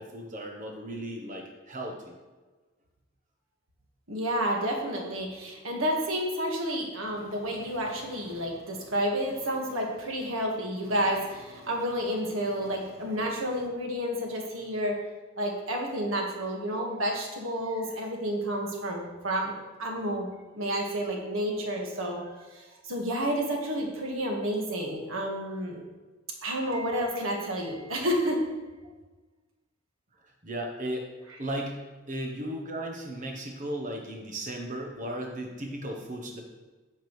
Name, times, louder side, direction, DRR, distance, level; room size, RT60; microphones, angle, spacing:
voice 1, 0.0-2.1 30.1-31.1 31.4-36.4, right 1 dB, 40° right, 1 dB, 0.9 m, -36 dB
voice 2, 4.1-14.9 15.4-19.5 19.8-20.3 20.5-22.2 22.5-25.8 26.4-28.4, equal, 80° right, 0 dB, 1.6 m, -30 dB
9.2 x 7.4 x 3.2 m, 1.3 s
head